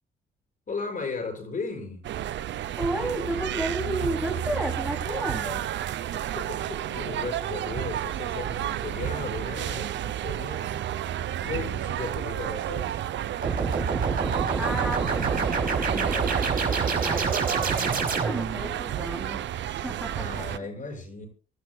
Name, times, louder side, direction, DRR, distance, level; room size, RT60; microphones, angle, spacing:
voice 1, 0.7-2.0 6.1-10.8 11.4-13.1 20.1-21.3, left 4 dB, 40° left, 6.3 m, -36 dB
sound 1, 2.0-20.6, right 11 dB, 65° right, 0.7 m, -31 dB
voice 2, 2.8-5.6 14.5-20.7, right 1 dB, 5° right, 3.2 m, -33 dB
sound 2, 13.4-18.6, right 4 dB, 45° right, 5.5 m, -26 dB
26.0 x 11.5 x 2.3 m
cardioid pair, 90°, 20 cm